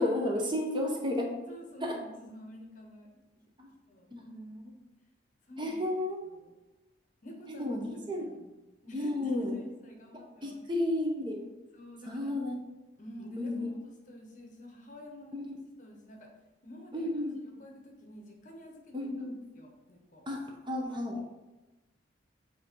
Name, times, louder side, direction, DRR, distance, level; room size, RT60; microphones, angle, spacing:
voice 1, 0.0-1.3 1.8-2.0 3.6-3.7 4.1-4.7 5.6-6.2 7.5-8.3 8.9-9.6 10.4-11.5 12.1-12.5 13.4-13.7 15.3-15.6 16.9-17.5 18.9-19.4 20.3-20.4 20.7-21.2, left 1 dB, 25° right, 1 dB, 0.8 m, -32 dB
voice 2, 1.5-3.2 3.9-4.1 5.5-5.8 6.3-6.5 7.2-7.8 8.1-8.5 8.8-10.6 11.7-12.4 13.0-15.4 15.8-16.3 16.6-18.9 19.5-20.2, left 1 dB, 45° left, 1 dB, 1.0 m, -48 dB
7.4 x 2.9 x 4.4 m, 1.1 s
head